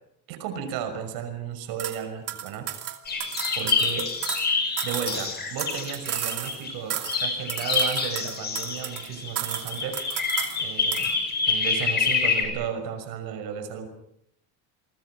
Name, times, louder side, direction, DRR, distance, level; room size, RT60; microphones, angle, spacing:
voice 1, 0.3-2.7 3.1-3.2 3.5-4.1 4.8-10.0 10.6-11.2 11.4-13.9, right 8 dB, 75° right, 9 dB, 6.0 m, -34 dB
sound 1, 1.8-2.0 2.3-4.5 4.8-6.6 6.9-7.2 7.5-9.1 9.4-10.6 10.9-11.1, right 11 dB, 40° right, 2.6 m, -33 dB
sound 2, 3.1-6.7 7.0-12.5, left 5 dB, 25° left, 6.0 m, -27 dB
28.5 x 23.5 x 5.9 m, 0.76 s
cardioid pair, 165°, 36 cm